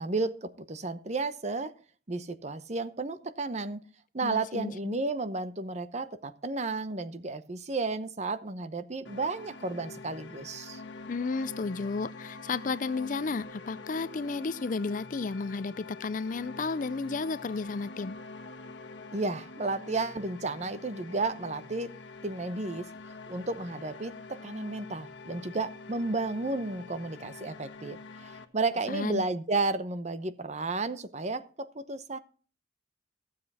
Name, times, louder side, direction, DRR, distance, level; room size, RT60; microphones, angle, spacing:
voice 1, 0.0-1.7 2.1-3.8 4.1-10.8 19.1-21.9 22.2-22.9 23.3-32.2, right 3 dB, 35° right, 0.8 m, -33 dB
voice 2, 4.2-5.0 11.1-18.2 28.9-29.2, left 4 dB, 45° left, 0.4 m, -33 dB
sound 1, 9.0-28.4, left 3 dB, 70° left, 1.3 m, -46 dB
15.0 x 7.6 x 4.2 m
head